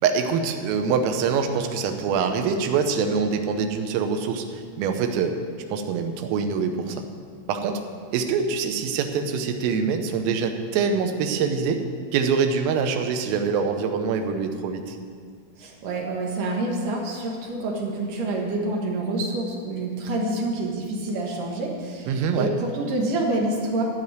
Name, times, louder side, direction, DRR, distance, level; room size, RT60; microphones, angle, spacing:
voice 1, 0.0-5.4 5.7-7.0 7.5-7.8 8.1-11.8 12.1-15.0 22.1-22.5, right 5 dB, 90° right, 6 dB, 3.5 m, -24 dB
voice 2, 15.6-23.8, right 2 dB, 65° right, -1 dB, 2.2 m, -27 dB
14.5 x 5.2 x 9.4 m, 2.1 s
omnidirectional pair, 5.7 m